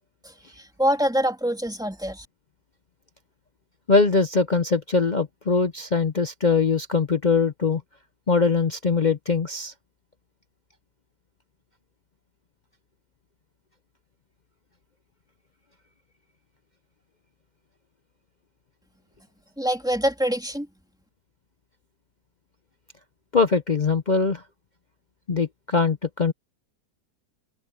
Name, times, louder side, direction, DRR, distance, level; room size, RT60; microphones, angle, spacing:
voice 1, 0.2-2.3 19.6-20.7, equal, ahead, 2.8 m, -25 dB
voice 2, 3.9-7.8 8.3-9.7 23.3-24.4 25.3-26.3, left 4 dB, 50° left, 0.5 m, -22 dB
omnidirectional pair, 1.8 m